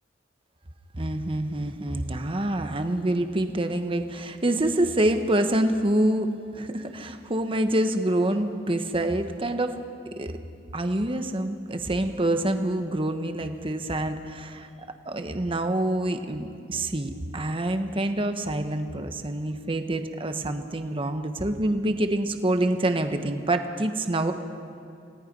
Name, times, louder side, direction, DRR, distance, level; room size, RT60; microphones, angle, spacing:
voice 1, 0.9-9.8 10.0-10.4 10.7-14.7 15.1-24.3, right 1 dB, 30° right, 7 dB, 1.1 m, -26 dB
29.0 x 18.0 x 5.4 m, 2.5 s
head